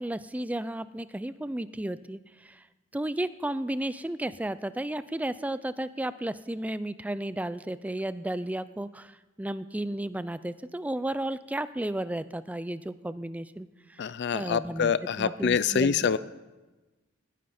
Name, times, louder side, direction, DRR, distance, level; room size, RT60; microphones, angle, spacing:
voice 1, 0.0-2.6 2.9-14.9 15.2-16.1, right 1 dB, 5° right, 15 dB, 0.4 m, -33 dB
voice 2, 14.0-16.2, left 6 dB, 60° left, 16 dB, 0.4 m, -26 dB
18.5 x 10.0 x 4.3 m, 1.1 s
head